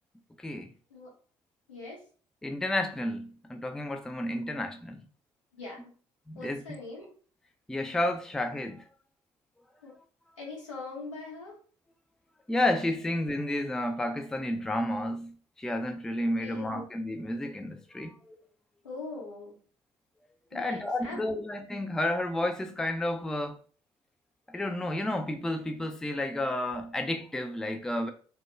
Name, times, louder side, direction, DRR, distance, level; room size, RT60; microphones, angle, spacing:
voice 1, 1.7-2.0 5.5-5.9 6.3-7.1 9.8-9.9 10.4-11.6 16.4-16.8 18.8-19.6 20.5-21.4, left 3 dB, 85° left, 0.7 m, -42 dB
voice 2, 2.4-5.1 6.3-6.6 7.7-8.9 12.5-18.4 20.5-23.6 24.5-28.1, left 1 dB, 5° left, 0.3 m, -31 dB
2.2 x 2.1 x 3.0 m
figure-of-eight pair, 50°, 16 cm